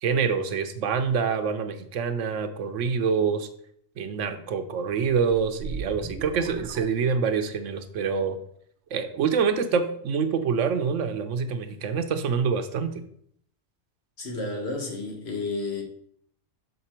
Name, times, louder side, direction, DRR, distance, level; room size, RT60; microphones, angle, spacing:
voice 1, 0.0-3.5 4.0-8.4 8.9-13.0, right 6 dB, 90° right, 1.0 m, -26 dB
sound 1, 5.5-7.6, right 4 dB, 65° right, 1.0 m, -39 dB
voice 2, 14.2-15.8, left 3 dB, 60° left, 1.4 m, -31 dB
6.6 x 4.1 x 4.3 m
omnidirectional pair, 1.2 m